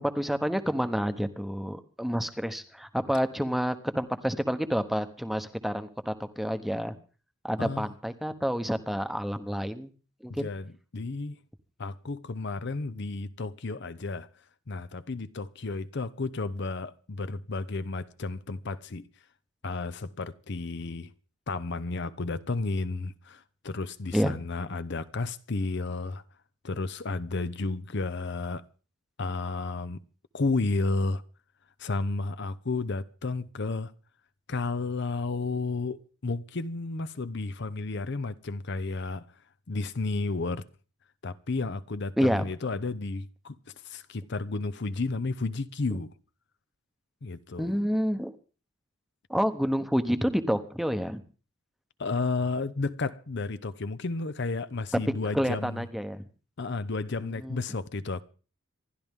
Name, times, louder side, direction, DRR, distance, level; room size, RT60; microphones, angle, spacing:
voice 1, 0.0-6.9 7.4-9.9 10.2-10.5 24.1-24.3 42.2-42.5 47.6-48.3 49.3-51.2 55.3-56.2 57.4-57.6, equal, ahead, 0.9 m, -29 dB
voice 2, 7.6-7.9 10.3-11.4 11.8-14.3 14.7-19.1 19.6-21.1 21.5-26.2 26.6-28.6 29.2-30.0 30.3-31.2 31.8-33.9 34.5-39.2 39.7-40.6 41.2-43.6 43.8-46.1 47.2-47.7 52.0-55.8 56.6-58.2, left 3 dB, 55° left, 0.7 m, -32 dB
27.0 x 12.0 x 3.6 m
head